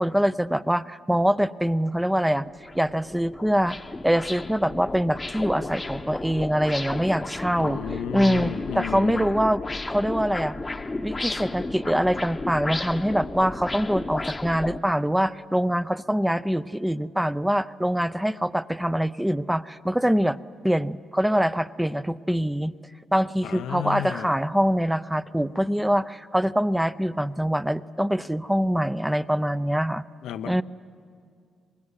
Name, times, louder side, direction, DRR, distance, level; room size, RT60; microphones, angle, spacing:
voice 1, 0.0-2.5 2.7-3.8 4.0-7.8 8.1-10.6 11.0-20.4 20.6-22.7 23.1-30.0 30.4-30.6, equal, 5° right, 14 dB, 0.5 m, -24 dB
sound 1, 1.9-2.0 2.4-14.8, left 2 dB, 20° left, 0.9 m, -33 dB
voice 2, 7.6-9.4 23.4-24.4 30.2-30.6, left 10 dB, 80° left, 10 dB, 0.6 m, -33 dB
24.5 x 20.5 x 9.8 m, 2.2 s
cardioid pair, 90°, 0 cm